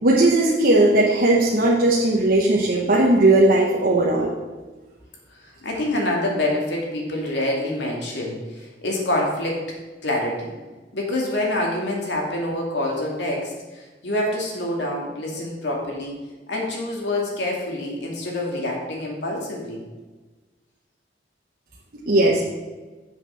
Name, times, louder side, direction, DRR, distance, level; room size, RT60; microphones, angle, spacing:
voice 1, 0.0-4.3 22.1-22.4, right 2 dB, 55° right, -4 dB, 1.1 m, -17 dB
voice 2, 5.4-9.6 10.0-10.5 10.9-16.2 16.5-19.8, left 1 dB, 85° left, -2 dB, 2.3 m, -26 dB
7.7 x 6.1 x 5.7 m, 1.3 s
head